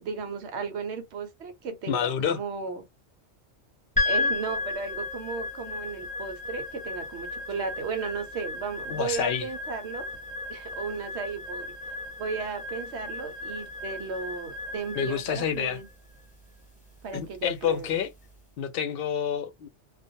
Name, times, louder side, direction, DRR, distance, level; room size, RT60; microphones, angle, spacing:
voice 1, 0.0-2.8 4.0-10.1 10.5-11.7 12.2-15.9 17.0-17.9, right 5 dB, 65° right, 1.0 m, -35 dB
voice 2, 1.9-2.4 8.9-9.5 15.0-15.8 17.1-18.1 18.6-19.7, left 8 dB, 60° left, 0.7 m, -28 dB
sound 1, 4.0-18.3, left 3 dB, 5° left, 1.0 m, -34 dB
2.5 x 2.1 x 2.6 m
omnidirectional pair, 1.2 m